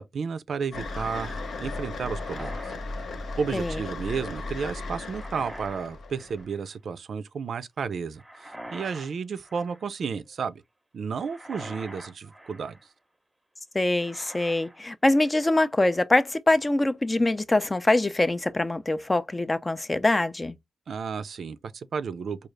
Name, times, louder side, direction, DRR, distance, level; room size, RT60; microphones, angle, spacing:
voice 1, 0.0-2.5 3.4-10.6 10.9-12.8 20.9-22.5, right 6 dB, 75° right, 0.4 m, -32 dB
sound 1, 0.7-6.4, left 3 dB, 75° left, 0.7 m, -36 dB
sound 2, 1.9-3.6 4.9-5.9 6.1-6.7 8.2-9.1 9.4-10.0 11.2-12.9 14.0-14.8 15.1-15.6, right 1 dB, 10° right, 0.7 m, -45 dB
voice 2, 13.7-20.6, left 2 dB, 20° left, 0.4 m, -24 dB
4.8 x 2.4 x 3.2 m
wide cardioid pair, 125°, 0 cm